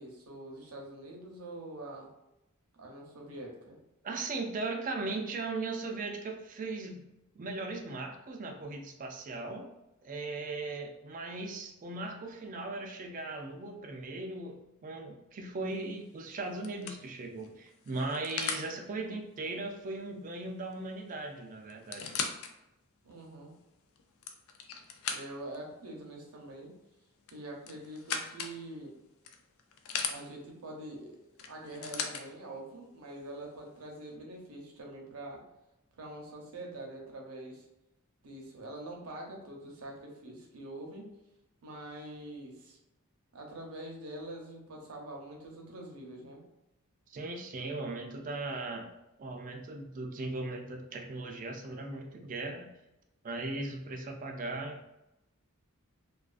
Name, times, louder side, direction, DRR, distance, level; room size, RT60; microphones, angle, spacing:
voice 1, 0.0-2.1 2.8-3.8 23.0-23.5 25.1-26.7 27.3-28.9 30.1-31.2 31.5-35.4 36.0-37.7 38.2-41.1 41.6-42.8 43.3-46.4, right 1 dB, 70° right, 0 dB, 0.7 m, -45 dB
voice 2, 4.0-7.1 7.3-9.7 10.0-22.2 47.1-48.9 49.2-52.7 53.2-54.8, right 2 dB, 40° right, 3 dB, 0.4 m, -38 dB
sound 1, 15.7-16.0 16.6-18.7 20.7-20.8 21.1-21.2 21.7-22.5 23.1-23.2 24.0-25.6 27.2-28.6 29.2-30.2 31.4-32.2 33.2-33.3, left 6 dB, 70° left, 0.3 m, -38 dB
2.4 x 2.3 x 2.4 m, 0.90 s
head